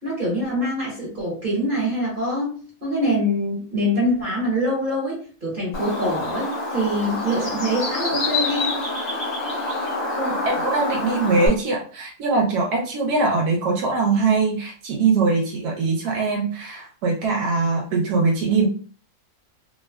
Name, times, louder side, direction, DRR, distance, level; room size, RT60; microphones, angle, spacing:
voice 1, 0.0-8.9, equal, 40° right, -6 dB, 1.1 m, -24 dB
Bird, 5.7-11.5, left 2 dB, 60° left, 1.2 m, -26 dB
voice 2, 10.2-18.7, right 4 dB, 80° right, 0 dB, 1.1 m, -22 dB
2.9 x 2.2 x 2.2 m, 0.42 s
omnidirectional pair, 1.7 m